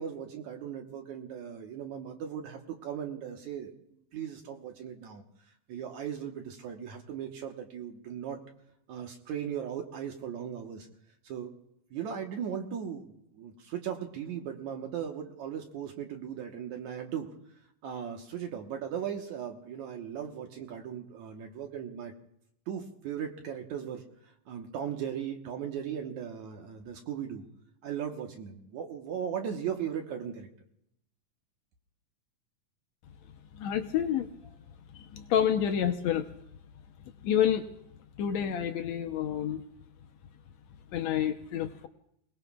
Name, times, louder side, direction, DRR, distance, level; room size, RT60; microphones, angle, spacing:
voice 1, 0.0-5.2 5.7-8.4 8.9-10.9 11.2-11.5 11.9-17.3 17.8-22.1 22.7-27.4 27.8-30.5, right 8 dB, 65° right, 3 dB, 2.3 m, -38 dB
voice 2, 33.6-34.3 34.9-36.3 37.2-37.7 38.2-39.6 40.9-41.9, left 9 dB, 75° left, 5 dB, 1.7 m, -28 dB
29.5 x 19.5 x 2.3 m, 0.75 s
omnidirectional pair, 4.0 m